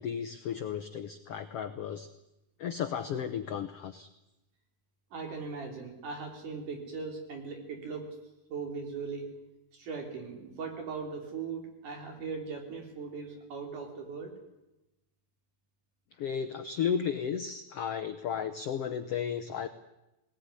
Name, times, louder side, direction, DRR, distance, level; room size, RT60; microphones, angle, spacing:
voice 1, 0.0-2.1 2.6-4.1 16.2-19.7, left 8 dB, 85° left, 9 dB, 1.3 m, -34 dB
voice 2, 5.1-8.2 8.5-9.3 9.7-14.3, right 5 dB, 60° right, 3 dB, 4.9 m, -39 dB
20.0 x 18.5 x 9.8 m, 0.92 s
omnidirectional pair, 4.2 m